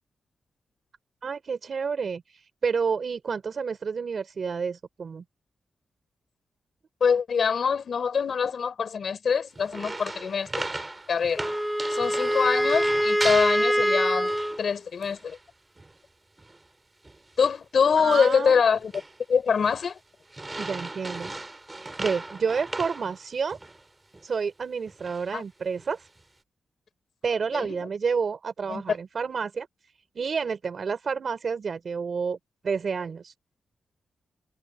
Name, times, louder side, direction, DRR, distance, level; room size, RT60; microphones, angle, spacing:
voice 1, 1.2-5.2 18.0-18.6 20.6-21.3 21.8-23.6 24.2-26.1 27.2-29.7 30.1-32.4 32.6-33.3, right 5 dB, 50° right, 4.8 m, -29 dB
voice 2, 7.0-10.6 11.1-11.4 11.9-15.4 17.4-18.9 19.3-20.0 25.3-25.4 27.5-27.9 28.7-28.8, left 6 dB, 55° left, 4.5 m, -24 dB
sound 1, 9.6-14.7 15.0-15.4 15.8-16.0 16.4-16.7 17.0-17.3 17.9-18.4 18.7-19.2 19.6-19.9 20.3-23.8 24.1-24.3 24.9-25.3 25.8-26.2, right 2 dB, 15° right, 4.8 m, -37 dB
Wind instrument woodwind instrument, 11.4-14.6, equal, ahead, 2.7 m, -24 dB
wide cardioid pair, 165°, 0 cm